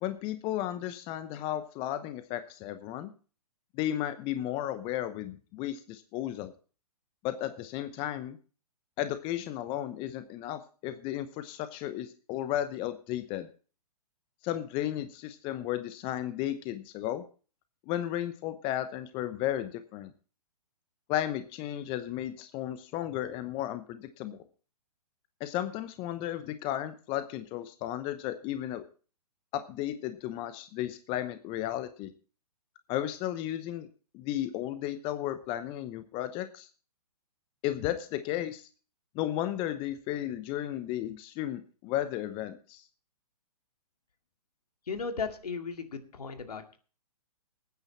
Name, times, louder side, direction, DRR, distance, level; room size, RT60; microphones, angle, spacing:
voice 1, 0.0-3.1 3.7-6.5 7.2-8.4 9.0-13.5 14.4-17.2 17.9-20.1 21.1-24.4 25.4-28.8 29.5-32.1 32.9-33.9 34.1-36.7 37.6-38.7 39.1-42.9, left 12 dB, 25° left, 11 dB, 0.9 m, -34 dB
voice 2, 44.9-46.8, left 5 dB, 75° left, 6 dB, 2.3 m, -36 dB
19.0 x 9.4 x 4.3 m, 0.39 s
hypercardioid pair, 125°, 20 cm